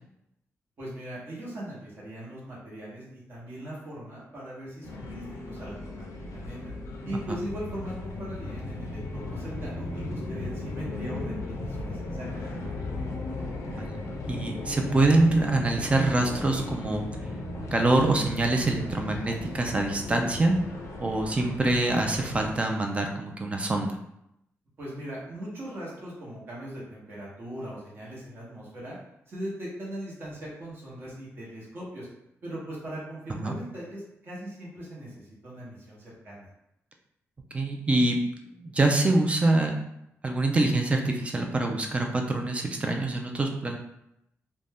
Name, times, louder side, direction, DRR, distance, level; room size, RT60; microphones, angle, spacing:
voice 1, 0.8-6.7 7.0-11.3 11.6-12.5 24.8-29.0 29.3-32.1 32.4-36.5, right 1 dB, 45° right, -6 dB, 0.9 m, -39 dB
sound 1, 4.8-22.5, left 2 dB, 80° left, 0.5 m, -36 dB
voice 2, 13.8-17.0 17.7-20.6 21.0-24.0 33.4-33.6 37.5-38.2 38.6-39.7 40.2-43.8, right 2 dB, 25° right, 3 dB, 0.4 m, -25 dB
2.5 x 2.2 x 3.4 m, 0.80 s
wide cardioid pair, 130°, 5 cm